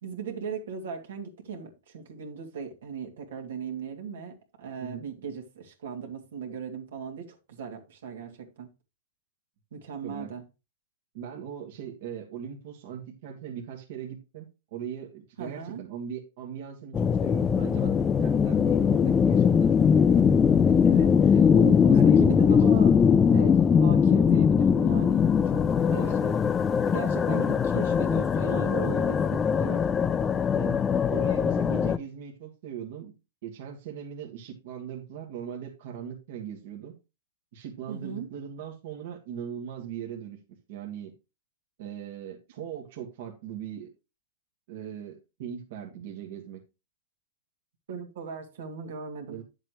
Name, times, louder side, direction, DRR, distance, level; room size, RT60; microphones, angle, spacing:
voice 1, 0.0-8.7 9.7-10.4 15.4-15.8 20.8-22.9 23.3-26.3 26.9-29.9 37.9-38.3 47.9-49.4, right 6 dB, 80° right, 2.5 m, -38 dB
voice 2, 4.8-5.3 10.0-10.3 11.1-20.3 20.6-20.8 21.3-21.5 21.9-22.7 25.9-26.2 30.6-30.8 31.1-33.1 33.4-36.9 37.5-40.4 40.7-41.1 41.8-43.9 44.7-46.6 49.3-49.4, right 8 dB, 60° right, 1.8 m, -39 dB
sound 1, 16.9-32.0, left 7 dB, 20° left, 0.4 m, -21 dB
9.8 x 7.4 x 3.1 m
hypercardioid pair, 140°, 0 cm